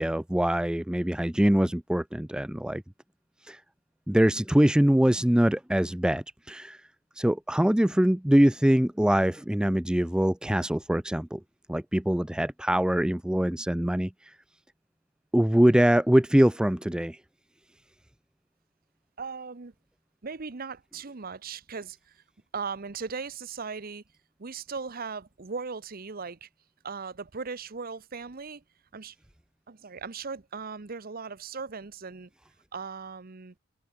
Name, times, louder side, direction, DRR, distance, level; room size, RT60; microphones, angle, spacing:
voice 1, 0.0-2.8 3.5-3.6 4.1-6.8 7.2-11.4 11.7-14.1 15.3-17.2, equal, 5° right, 0.4 m, -23 dB
voice 2, 19.2-19.7 20.2-22.2 22.5-24.0 24.4-26.5 26.8-28.6 28.9-29.2 29.7-32.3 32.7-33.5, right 5 dB, 45° right, 0.8 m, -38 dB
head